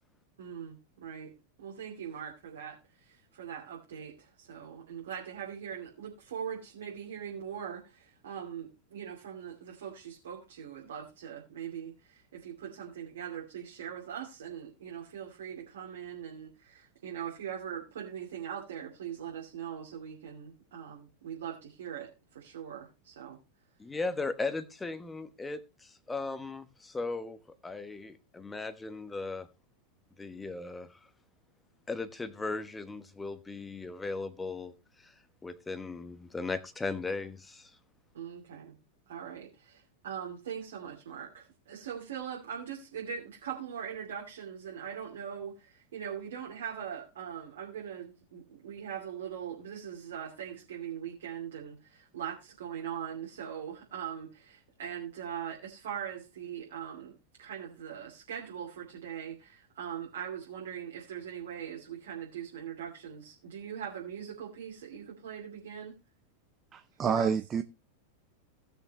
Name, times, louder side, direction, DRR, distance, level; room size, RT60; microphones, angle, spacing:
voice 1, 0.4-1.3 1.6-23.4 38.1-38.7 39.1-57.1 57.4-66.0 67.0-67.3, right 8 dB, 60° right, 2.6 m, -41 dB
voice 2, 23.8-29.5 30.2-31.1 31.9-37.8, left 3 dB, 10° left, 1.1 m, -37 dB
voice 3, 66.7-67.6, right 6 dB, 25° right, 0.6 m, -28 dB
18.0 x 6.6 x 3.0 m
figure-of-eight pair, 90°, 0 cm